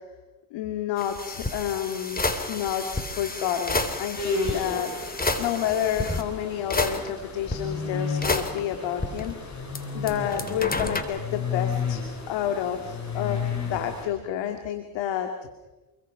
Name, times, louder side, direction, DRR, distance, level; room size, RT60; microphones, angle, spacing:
voice 1, 0.5-9.6 9.9-15.3, left 10 dB, 85° left, 5 dB, 2.4 m, -30 dB
sound 1, 1.0-6.2 6.7-7.5 8.2-9.8 10.1-11.0, left 2 dB, 20° left, 3.3 m, -30 dB
sound 2, 4.1-14.0, left 4 dB, 40° left, 7.8 m, -33 dB
28.5 x 23.0 x 5.8 m, 1.1 s
cardioid pair, 85°, 43 cm